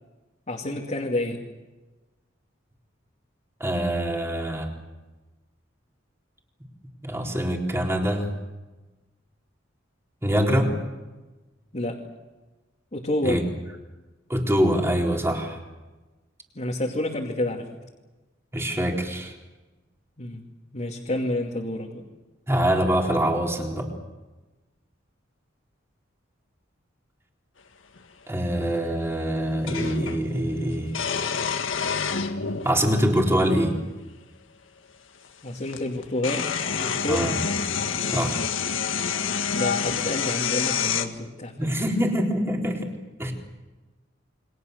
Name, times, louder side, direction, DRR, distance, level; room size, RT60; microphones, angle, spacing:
voice 1, 0.5-1.4 11.7-12.0 12.9-13.4 16.5-17.6 20.2-20.4 20.7-22.0 35.4-37.3 39.5-41.8, left 1 dB, 35° left, -2 dB, 2.6 m, -29 dB
voice 2, 3.6-4.7 7.0-8.3 10.2-10.7 13.2-13.4 14.3-15.6 18.5-19.3 22.5-23.9 28.3-30.9 32.6-33.8 37.1-37.4 38.1-38.5 41.6-42.8 43.2-43.3, equal, 15° right, 0 dB, 4.0 m, -24 dB
sound 1, 28.0-28.1 29.7-30.2 30.9-32.7 33.7-33.8 35.2-35.3 35.7-41.1, left 6 dB, 80° left, 1.8 m, -27 dB
29.0 x 23.5 x 6.8 m, 1.2 s
head